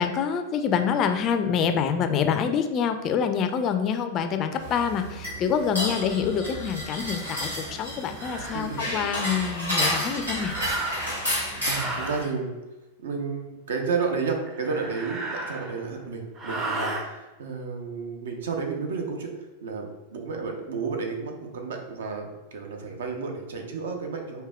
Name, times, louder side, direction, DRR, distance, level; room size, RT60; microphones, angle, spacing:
voice 1, 0.0-10.5, left 7 dB, 35° left, 7 dB, 0.3 m, -26 dB
sound 1, 4.6-12.2, equal, 80° right, 1.4 m, -31 dB
sound 2, 7.2-7.4 8.1-8.6 10.3-11.2 11.7-12.3 14.5-15.9 16.4-17.1, right 2 dB, 25° right, 0.7 m, -34 dB
voice 2, 8.5-8.9 11.7-12.5 13.0-24.4, right 5 dB, 60° right, 3 dB, 0.6 m, -31 dB
4.8 x 2.8 x 2.3 m, 1.1 s
figure-of-eight pair, 90°, 0 cm